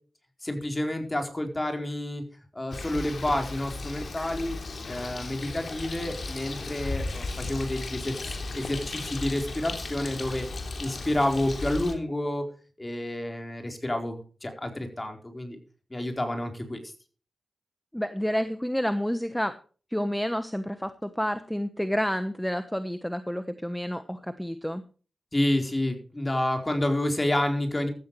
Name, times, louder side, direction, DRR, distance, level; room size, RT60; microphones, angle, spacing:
voice 1, 0.4-2.2 2.5-4.6 4.8-8.2 8.5-10.5 10.8-12.4 12.8-15.6 15.9-16.9 25.3-27.9, left 1 dB, 20° left, 4 dB, 4.1 m, -29 dB
Bird, 2.7-11.9, left 3 dB, 60° left, 3.3 m, -36 dB
voice 2, 17.9-19.5 19.9-24.8, equal, 5° left, 10 dB, 1.1 m, -29 dB
16.0 x 13.0 x 3.2 m, 0.39 s
wide cardioid pair, 85°, 0 cm